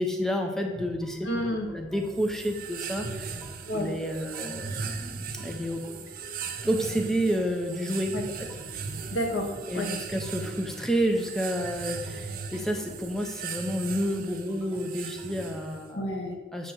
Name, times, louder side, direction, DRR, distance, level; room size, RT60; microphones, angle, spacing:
voice 1, 0.0-1.3 1.7-3.4 3.7-5.9 6.6-8.5 9.7-16.0 16.5-16.7, equal, 5° left, 3 dB, 0.6 m, -30 dB
sound 1, 0.8-15.5, left 1 dB, 15° right, 1.4 m, -49 dB
voice 2, 1.2-1.7 3.7-3.9 8.1-8.2 9.1-10.0 15.9-16.3, equal, 85° left, 2 dB, 1.1 m, -30 dB
sound 2, 2.1-15.9, right 5 dB, 50° right, 0.6 m, -38 dB
8.1 x 2.9 x 5.9 m, 1.3 s
head